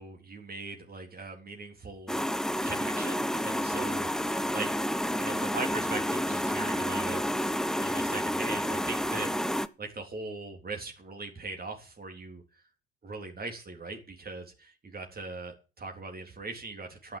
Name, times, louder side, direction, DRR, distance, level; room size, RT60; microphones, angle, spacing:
voice 1, 0.0-2.3 2.6-4.8 5.2-7.2 7.7-12.4 13.0-17.2, right 3 dB, 30° right, 3 dB, 3.7 m, -40 dB
sound 1, 2.1-9.7, equal, ahead, 0.9 m, -30 dB
11.5 x 9.4 x 7.6 m, 0.34 s
figure-of-eight pair, 60°, 30 cm